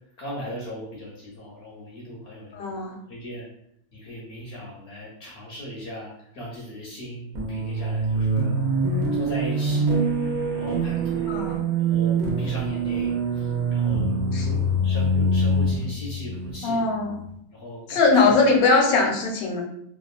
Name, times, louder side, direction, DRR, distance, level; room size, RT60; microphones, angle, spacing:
voice 1, 0.2-3.5 3.9-8.5 9.1-9.9 10.5-11.3 11.9-16.8 17.5-18.4, equal, 60° left, -3 dB, 0.7 m, -38 dB
voice 2, 2.5-2.9 11.3-11.6 14.3-14.5 16.6-17.2 17.9-19.6, left 3 dB, 80° left, 1 dB, 1.1 m, -20 dB
sound 1, 7.3-17.2, right 2 dB, 75° right, 1.1 m, -24 dB
2.8 x 2.4 x 2.3 m, 0.73 s
omnidirectional pair, 1.5 m